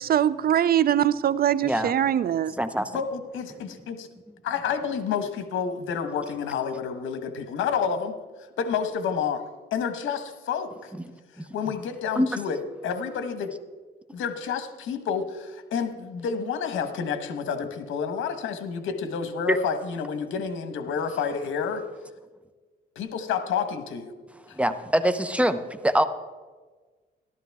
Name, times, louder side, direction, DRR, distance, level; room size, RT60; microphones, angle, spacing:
voice 1, 0.0-2.5, right 10 dB, 50° right, 0.4 m, -22 dB
voice 2, 1.6-1.9 2.6-2.9 11.5-11.6 12.2-12.3 19.5-19.6 24.5-26.0, equal, 5° right, 0.8 m, -24 dB
voice 3, 2.9-4.1 4.4-8.2 8.6-9.4 9.7-10.9 11.5-12.6 12.8-13.5 14.1-21.8 22.9-24.1, left 6 dB, 80° left, 1.3 m, -29 dB
13.0 x 12.0 x 3.5 m
cardioid pair, 90°, 20 cm